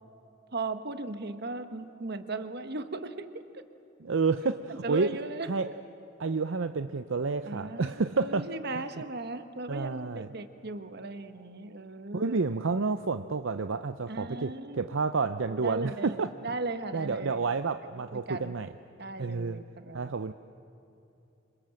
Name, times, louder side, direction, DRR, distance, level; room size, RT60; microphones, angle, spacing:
voice 1, 0.5-3.3 4.8-5.7 7.5-7.9 8.2-12.5 14.1-14.8 15.5-17.5 17.8-18.6 19.0-20.1, right 2 dB, 55° right, 9 dB, 1.3 m, -37 dB
voice 2, 4.0-5.2 5.4-5.7 6.2-8.5 8.7-9.0 9.7-10.3 12.1-16.3 16.9-18.7 19.2-19.6 19.9-20.3, right 4 dB, 70° right, 10 dB, 0.6 m, -30 dB
28.0 x 26.0 x 7.7 m, 2.8 s
head